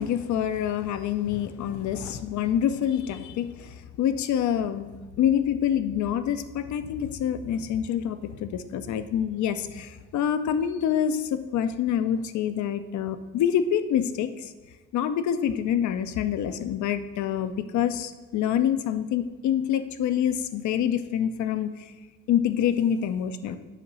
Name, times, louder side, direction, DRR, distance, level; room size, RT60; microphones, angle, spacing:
voice 1, 0.0-3.5 4.0-4.9 5.2-14.3 14.9-21.7 22.3-23.6, left 9 dB, 70° left, 11 dB, 0.6 m, -26 dB
8.0 x 2.9 x 5.5 m, 1.3 s
cardioid pair, 90°, 30 cm